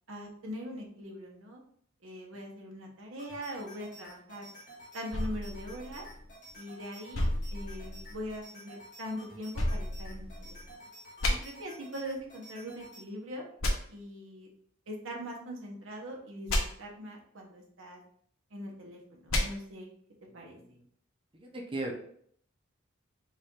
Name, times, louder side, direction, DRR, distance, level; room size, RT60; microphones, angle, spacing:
voice 1, 0.1-1.6 2.0-4.5 4.9-6.1 6.5-10.6 11.2-13.4 13.9-14.5 14.9-18.0 18.5-19.9 20.3-20.6, equal, 70° right, 0 dB, 1.0 m, -42 dB
sound 1, 3.2-13.0, equal, 40° left, 1.8 m, -51 dB
sound 2, 5.1-6.5 7.1-8.4 9.5-10.7 11.2-11.3 13.6-13.7 16.5-16.6 19.3-19.4, left 1 dB, 85° left, 1.0 m, -31 dB
voice 2, 20.3-20.9 21.3-21.9, right 2 dB, 25° right, 0 dB, 0.7 m, -39 dB
5.4 x 2.5 x 3.7 m, 0.63 s
head